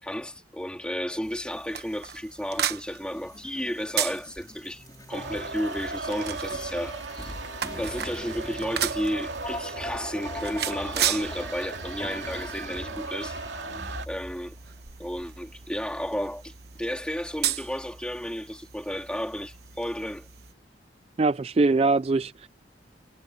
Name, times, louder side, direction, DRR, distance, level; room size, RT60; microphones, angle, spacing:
voice 1, 0.0-7.3 7.8-13.4 14.1-14.6 15.0-16.5 16.8-20.3, equal, 5° left, 3.6 m, -33 dB
sound 1, 1.2-20.5, right 10 dB, 60° right, 1.1 m, -36 dB
sound 2, 3.1-14.4, left 1 dB, 20° left, 4.3 m, -42 dB
sound 3, 5.1-14.1, right 3 dB, 85° right, 2.8 m, -37 dB
voice 2, 21.2-22.5, right 3 dB, 35° right, 0.3 m, -22 dB
head